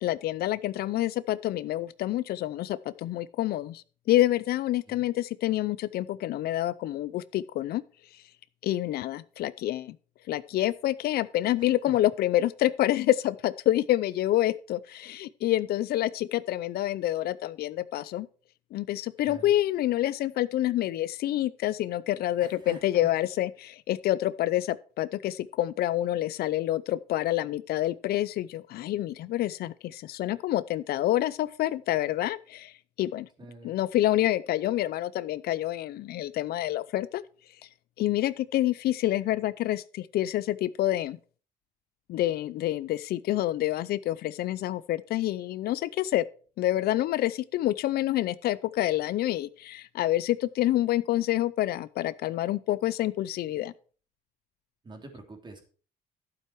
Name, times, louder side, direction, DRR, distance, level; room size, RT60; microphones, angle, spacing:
voice 1, 0.0-7.8 8.6-10.0 10.3-18.3 18.7-32.7 33.0-33.3 33.6-37.2 38.0-41.2 42.1-46.2 46.6-53.7, left 14 dB, 65° left, 0.6 m, -27 dB
voice 2, 11.6-12.0 19.2-19.5 22.4-23.1 33.4-33.7 54.8-55.6, right 2 dB, 25° right, 3.0 m, -46 dB
11.5 x 7.7 x 4.7 m
cardioid pair, 110°, 17 cm